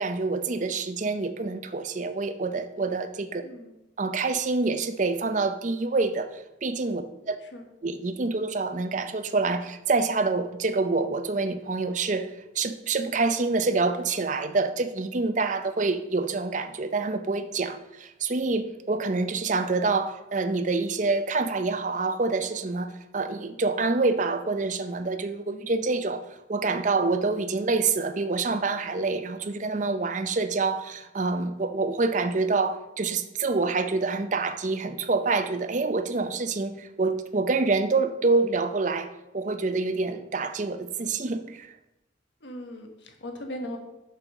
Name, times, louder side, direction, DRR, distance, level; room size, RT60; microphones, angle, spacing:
voice 1, 0.0-3.4 4.0-7.4 7.8-41.7, right 3 dB, 40° right, 0.5 m, -27 dB
voice 2, 42.4-43.8, left 1 dB, 65° left, 1.4 m, -38 dB
6.8 x 5.5 x 6.0 m
head